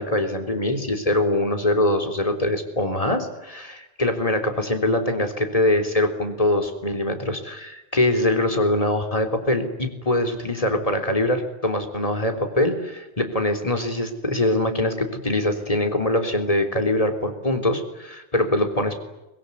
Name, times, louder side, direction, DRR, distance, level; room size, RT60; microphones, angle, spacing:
voice 1, 0.0-19.0, left 1 dB, 30° left, 6 dB, 3.8 m, -23 dB
23.5 x 22.5 x 9.8 m, 0.98 s
omnidirectional pair, 1.1 m